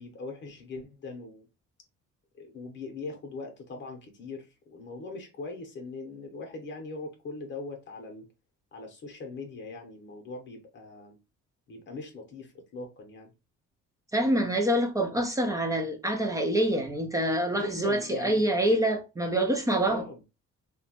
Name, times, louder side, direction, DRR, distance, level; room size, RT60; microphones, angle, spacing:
voice 1, 0.0-1.5 2.3-8.3 8.7-11.2 11.7-13.3 17.5-18.5 19.9-20.2, left 3 dB, 40° left, 0.8 m, -40 dB
voice 2, 14.1-20.0, right 1 dB, 10° right, 0.4 m, -26 dB
2.8 x 2.2 x 2.8 m
cardioid pair, 150°, 30 cm